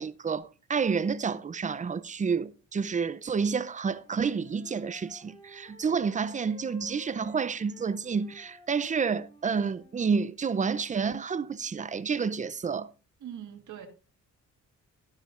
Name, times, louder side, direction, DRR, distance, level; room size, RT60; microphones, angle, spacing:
voice 1, 0.0-12.9, right 5 dB, 25° right, 0.5 m, -29 dB
Wind instrument woodwind instrument, 3.6-10.1, right 1 dB, 20° left, 5.6 m, -53 dB
voice 2, 13.2-13.9, right 10 dB, 75° right, 1.6 m, -42 dB
12.5 x 11.0 x 2.5 m
cardioid pair, 90°, 30 cm